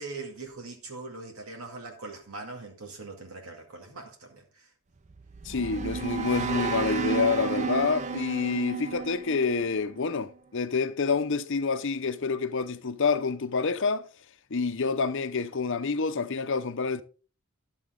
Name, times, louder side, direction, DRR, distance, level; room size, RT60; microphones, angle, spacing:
voice 1, 0.0-4.7, right 3 dB, 75° right, 2.2 m, -41 dB
sound 1, 5.0-10.3, right 5 dB, 30° right, 0.5 m, -32 dB
voice 2, 5.4-14.1 14.5-17.0, left 4 dB, 60° left, 0.7 m, -27 dB
12.0 x 7.1 x 3.8 m
head